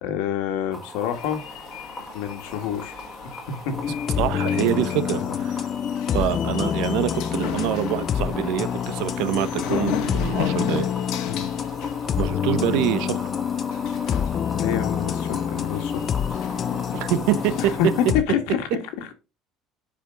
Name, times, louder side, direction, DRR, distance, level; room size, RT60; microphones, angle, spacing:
voice 1, 0.0-1.4 2.1-3.0 3.2-3.7 5.1-5.4 11.2-11.5 14.5-16.0 17.6-19.1, left 9 dB, 80° left, 2.0 m, -28 dB
sound 1, 0.7-18.1, left 1 dB, 5° left, 1.7 m, -39 dB
sound 2, 1.1-17.8, left 9 dB, 60° left, 1.4 m, -36 dB
sound 3, 3.7-18.2, left 8 dB, 30° left, 0.3 m, -27 dB
voice 2, 4.2-5.7 6.1-10.9 12.2-13.2 16.9-17.7, right 12 dB, 65° right, 0.9 m, -25 dB
11.0 x 5.1 x 3.9 m
cardioid pair, 180°, 0 cm